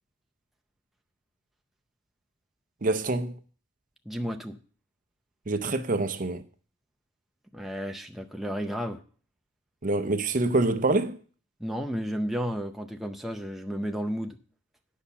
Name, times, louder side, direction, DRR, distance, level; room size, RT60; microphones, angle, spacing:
voice 1, 2.8-3.4 5.5-6.4 9.8-11.2, right 2 dB, 40° right, 0.7 m, -26 dB
voice 2, 4.1-4.6 7.5-9.0 11.6-14.4, equal, ahead, 0.5 m, -32 dB
10.5 x 5.6 x 7.0 m
head